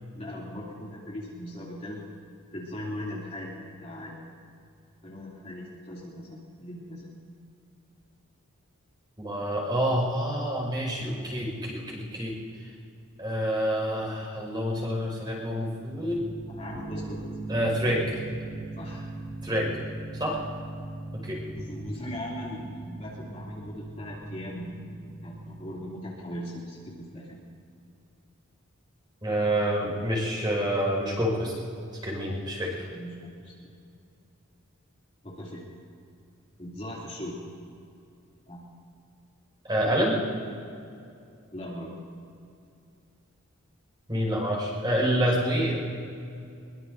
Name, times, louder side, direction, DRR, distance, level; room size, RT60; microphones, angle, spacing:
voice 1, 0.1-2.1 2.5-4.2 5.0-7.1 16.5-17.2 18.8-19.1 21.5-27.4 32.9-33.7 35.2-35.6 36.6-37.4 38.5-38.6 41.5-41.9 45.2-45.4, left 1 dB, 30° left, -6 dB, 2.8 m, -39 dB
voice 2, 9.2-12.3 13.2-16.3 17.5-18.2 19.4-19.8 20.1-20.4 21.1-21.4 29.2-31.5 32.0-32.8 39.6-40.2 44.1-45.8, equal, 20° right, -2 dB, 5.3 m, -27 dB
sound 1, 16.1-26.0, right 2 dB, 10° left, 3.4 m, -40 dB
23.0 x 22.5 x 2.7 m, 2.5 s
head